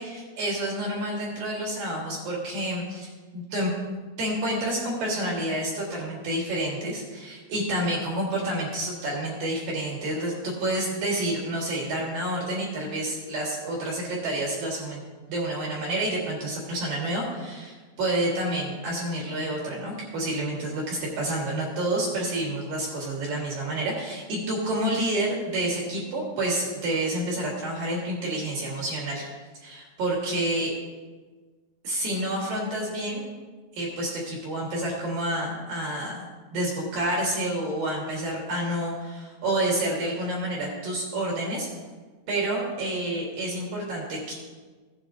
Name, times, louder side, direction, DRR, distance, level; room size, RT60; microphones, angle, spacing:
voice 1, 0.0-3.7 4.2-15.0 15.3-29.2 29.6-30.7 31.8-33.2 33.8-36.3 36.5-41.7 42.3-44.3, right 1 dB, 60° right, -4 dB, 2.5 m, -29 dB
16.0 x 7.9 x 2.6 m, 1.4 s
omnidirectional pair, 5.8 m